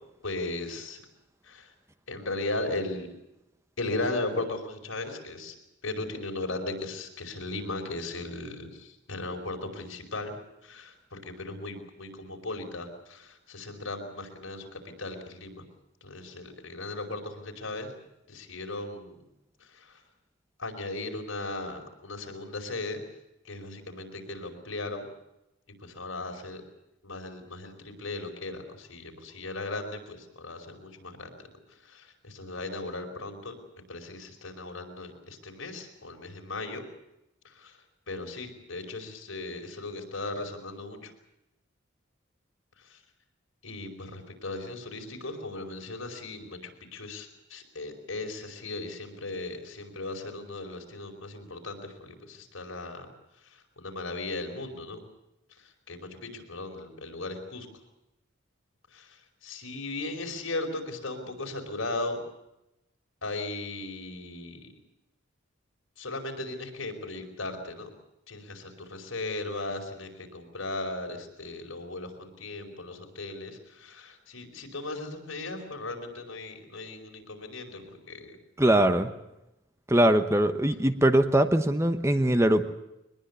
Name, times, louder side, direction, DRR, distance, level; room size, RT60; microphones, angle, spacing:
voice 1, 0.2-1.0 1.4-1.7 2.1-3.1 3.8-5.6 5.8-10.4 10.6-15.6 16.0-18.0 18.3-19.2 19.6-20.0 20.6-23.0 23.4-25.1 25.8-26.6 27.0-31.3 31.7-33.6 33.9-36.9 37.4-41.1 42.8-43.0 43.6-53.1 53.3-55.0 55.5-57.7 58.9-62.2 63.2-64.7 66.0-67.9 68.3-78.4, left 2 dB, 75° left, 3 dB, 5.0 m, -37 dB
voice 2, 78.6-79.1 79.9-82.7, right 1 dB, 15° right, 9 dB, 1.0 m, -22 dB
23.0 x 20.5 x 8.2 m, 0.89 s
head